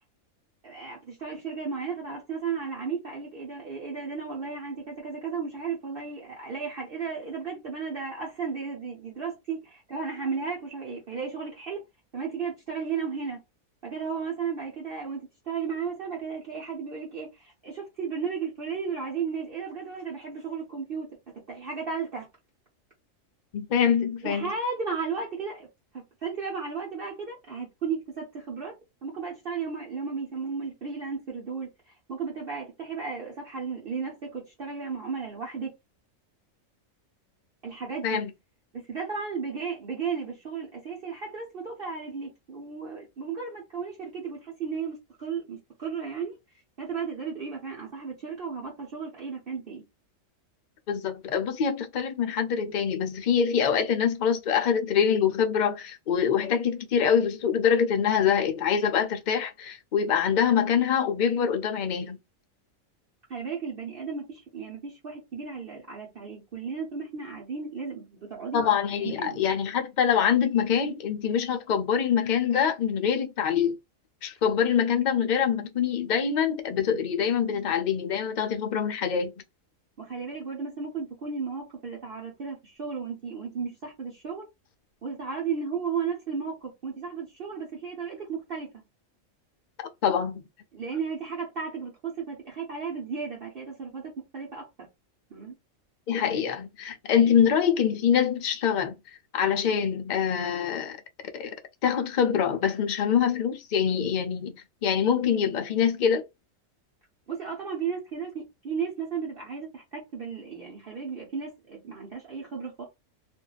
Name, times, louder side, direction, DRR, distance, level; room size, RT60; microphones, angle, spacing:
voice 1, 0.6-11.8 12.1-13.4 13.8-21.1 21.5-22.3 24.2-25.7 26.2-28.7 29.0-31.7 32.1-35.7 37.6-38.2 38.7-46.3 46.8-49.8 63.3-68.6 68.9-69.4 80.0-84.5 85.0-88.7 90.7-94.9 95.3-95.5 107.3-112.8, right 5 dB, 45° right, 1.0 m, -34 dB
voice 2, 23.5-24.5 38.0-38.3 50.9-62.2 68.5-73.8 74.2-79.3 89.8-90.4 96.1-99.0 99.3-101.0 101.3-101.5 101.8-106.3, left 7 dB, 65° left, 0.4 m, -25 dB
2.6 x 2.2 x 3.9 m
omnidirectional pair, 1.4 m